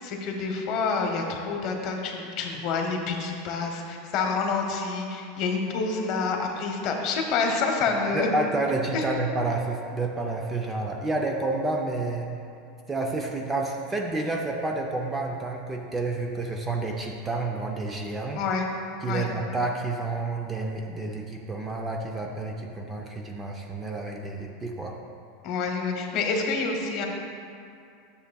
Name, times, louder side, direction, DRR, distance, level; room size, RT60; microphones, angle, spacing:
voice 1, 0.0-8.3 8.9-9.0 18.4-18.6 19.1-19.3 25.4-27.1, left 4 dB, 45° left, 2 dB, 1.0 m, -28 dB
voice 2, 8.1-12.3 12.9-18.4 19.0-25.0, right 2 dB, 10° right, 1 dB, 0.5 m, -29 dB
11.0 x 6.9 x 2.3 m, 2.5 s
supercardioid pair, 155°, 0 cm